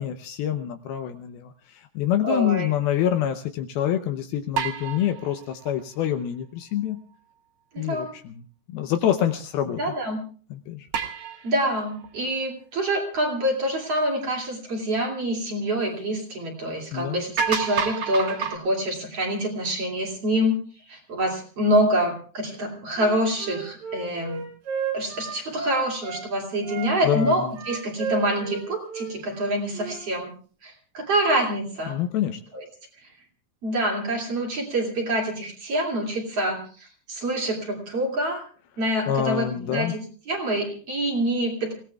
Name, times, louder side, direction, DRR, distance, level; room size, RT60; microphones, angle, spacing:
voice 1, 0.0-7.0 7.8-9.8 10.5-10.9 16.9-17.2 27.0-27.6 31.9-32.4 39.1-39.9, left 10 dB, 75° left, 7 dB, 2.4 m, -26 dB
voice 2, 2.2-2.7 7.7-8.1 9.8-10.2 11.4-20.6 20.9-24.4 24.9-30.3 30.6-32.0 32.5-32.6 33.6-38.5 38.8-40.0 40.3-41.7, right 1 dB, 40° right, 0 dB, 3.0 m, -26 dB
sound 1, 4.5-6.1 10.9-12.1 13.2-13.3 17.0-17.1 17.4-18.6, right 6 dB, 65° right, 1.3 m, -29 dB
Wind instrument woodwind instrument, 23.0-26.2 26.6-30.0, right 5 dB, 90° right, 6.0 m, -33 dB
29.5 x 17.0 x 2.3 m, 0.41 s
omnidirectional pair, 4.9 m